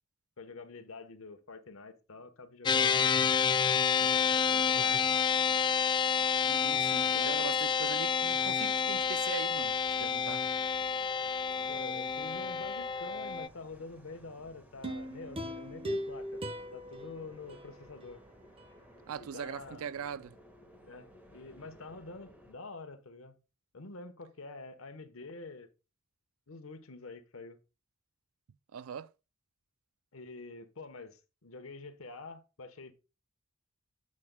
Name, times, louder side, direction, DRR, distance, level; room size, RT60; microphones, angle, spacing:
voice 1, 0.4-3.8 4.0-5.1 7.0-7.5 11.7-16.4 16.7-18.2 19.2-19.9 20.9-23.4 23.7-25.7 26.5-27.6 30.1-32.9, left 3 dB, 70° left, 1.2 m, -47 dB
sound 1, 2.7-13.5, left 6 dB, 20° left, 0.3 m, -29 dB
sound 2, 4.0-22.6, equal, 10° right, 1.7 m, -58 dB
voice 2, 6.5-10.4 19.1-20.3 28.7-29.1, right 7 dB, 75° right, 0.4 m, -41 dB
sound 3, 14.8-18.1 18.6-18.7, equal, 25° right, 1.2 m, -39 dB
10.5 x 7.5 x 2.3 m
head